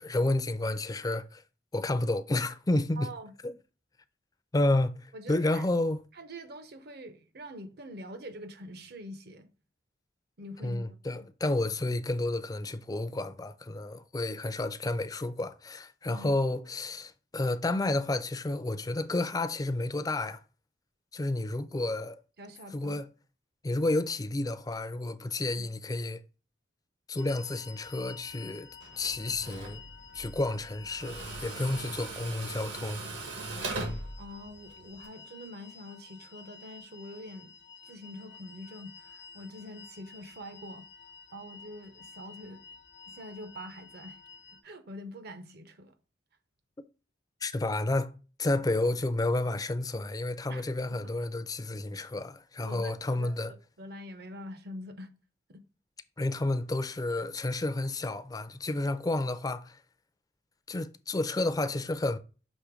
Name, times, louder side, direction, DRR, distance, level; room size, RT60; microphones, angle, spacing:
voice 1, 0.0-1.4 1.7-3.1 3.4-3.5 4.5-6.0 10.6-20.4 21.1-22.2 22.7-23.1 23.6-26.2 27.1-28.7 29.0-29.8 30.1-33.0 47.4-53.5 56.2-59.8 60.7-62.2, left 2 dB, 20° left, 0.4 m, -30 dB
voice 2, 3.0-3.3 5.1-5.7 6.1-9.5 10.4-11.3 16.1-16.3 22.4-23.0 34.2-37.5 37.9-40.9 41.3-42.7 43.1-44.2 44.6-45.9 50.5-50.7 51.0-51.1 52.6-55.1 55.5-55.6, equal, 60° right, 0.8 m, -45 dB
sound 1, 27.2-44.6, left 5 dB, 75° left, 0.7 m, -51 dB
Tools, 28.8-35.1, right 2 dB, 75° right, 1.5 m, -40 dB
6.4 x 3.0 x 4.9 m
head